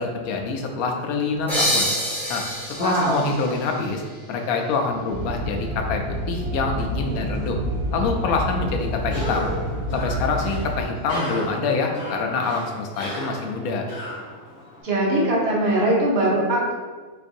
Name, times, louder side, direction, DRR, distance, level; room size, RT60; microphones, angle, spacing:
voice 1, 0.0-1.9 2.3-2.4 2.8-4.0 4.3-7.6 7.9-9.5 9.9-13.9, left 4 dB, 75° left, 3 dB, 1.0 m, -25 dB
sound 1, 1.5-4.9, equal, 5° left, 0.4 m, -27 dB
voice 2, 2.8-3.2 14.8-16.7, right 1 dB, 50° right, -4 dB, 1.0 m, -21 dB
sound 2, 5.1-10.8, equal, 80° right, 1.2 m, -28 dB
Cough, 9.0-14.8, left 1 dB, 35° left, 1.2 m, -34 dB
4.6 x 2.5 x 2.6 m, 1.4 s
omnidirectional pair, 1.6 m